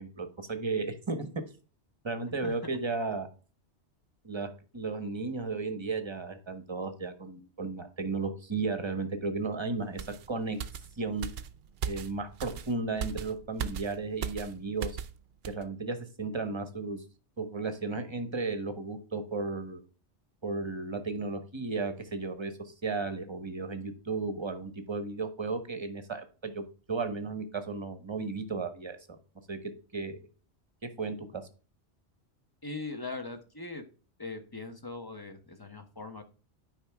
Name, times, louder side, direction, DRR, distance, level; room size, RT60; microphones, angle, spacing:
voice 1, 0.0-1.4 2.0-3.3 4.2-10.6 11.0-11.3 11.8-15.0 15.5-17.0 17.4-19.8 20.4-29.0 29.5-30.3 31.0-31.4, right 3 dB, 25° right, 9 dB, 1.0 m, -34 dB
sound 1, 10.0-15.2 15.4-15.6, right 7 dB, 65° right, 0.8 m, -38 dB
voice 2, 32.6-33.8 34.2-36.2, left 3 dB, 20° left, 7 dB, 0.9 m, -40 dB
9.0 x 5.2 x 3.5 m, 0.36 s
omnidirectional pair, 1.2 m